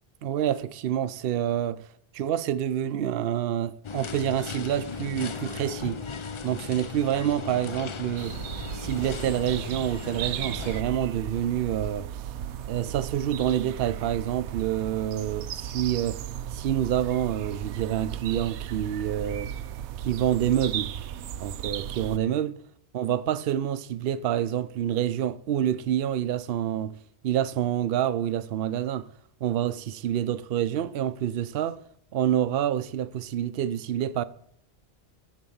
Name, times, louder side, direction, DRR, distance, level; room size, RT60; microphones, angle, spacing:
voice 1, 0.2-1.9 2.1-6.0 6.4-8.4 8.7-12.2 12.7-16.3 16.5-19.5 20.0-20.9 21.4-22.6 22.9-27.0 27.2-29.1 29.4-31.8 32.1-34.2, right 10 dB, 65° right, 0.8 m, -27 dB
sound 1, 3.8-10.8, left 5 dB, 40° left, 0.4 m, -37 dB
sound 2, 8.2-22.2, right 10 dB, 90° right, 0.9 m, -35 dB
13.5 x 4.5 x 7.0 m
omnidirectional pair, 1.1 m